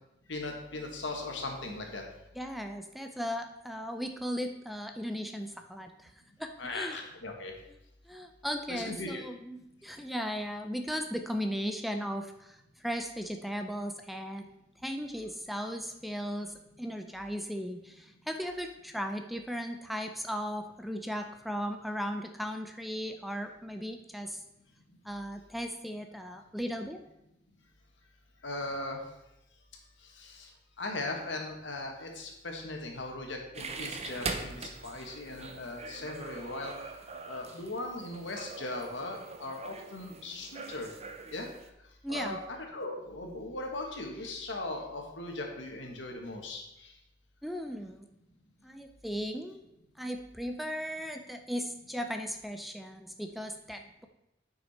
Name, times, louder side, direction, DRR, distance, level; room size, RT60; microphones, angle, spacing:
voice 1, 0.3-2.1 6.6-7.5 8.7-9.2 28.4-29.0 30.2-30.5 30.8-36.8 37.2-40.9 41.3-41.5 42.1-46.9, left 2 dB, 75° left, 2 dB, 1.7 m, -38 dB
voice 2, 2.4-6.1 6.4-7.0 8.1-14.5 14.8-24.4 25.0-27.0 42.0-42.4 47.4-48.1 48.6-49.6 50.0-54.1, equal, ahead, 5 dB, 0.5 m, -37 dB
sound 1, 33.5-41.7, right 4 dB, 35° right, 0.7 m, -42 dB
9.8 x 5.9 x 4.3 m, 0.86 s
head